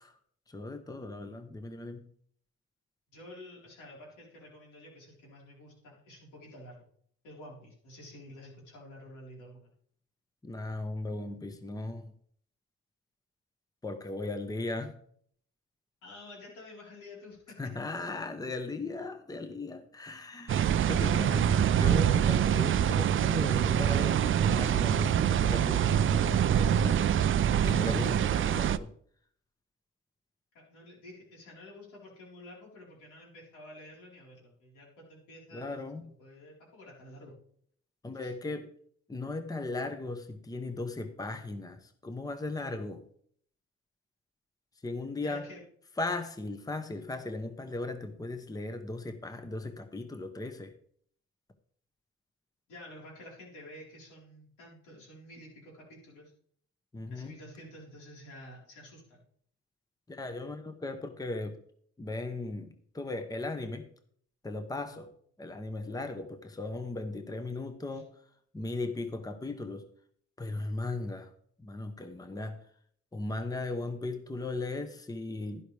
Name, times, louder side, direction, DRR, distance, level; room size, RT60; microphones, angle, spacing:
voice 1, 0.5-2.1 10.4-12.1 13.8-15.0 17.6-27.2 27.6-28.9 35.5-36.2 38.0-38.7 39.1-43.1 44.8-45.5 46.0-50.8 56.9-57.3 60.1-61.6 62.0-63.9 64.4-65.1 65.4-68.2 68.5-69.9 70.4-71.3 71.6-72.7 73.1-75.6, left 2 dB, 10° left, 0.9 m, -37 dB
voice 2, 3.1-6.8 7.2-9.7 16.0-17.5 30.5-35.8 36.2-37.3 38.1-38.3 45.2-45.6 52.7-56.3 57.1-59.2 67.9-68.0, left 1 dB, 85° left, 4.2 m, -50 dB
sound 1, 20.5-28.8, right 9 dB, 45° right, 0.4 m, -25 dB
11.0 x 11.0 x 3.4 m
cardioid pair, 90°, 30 cm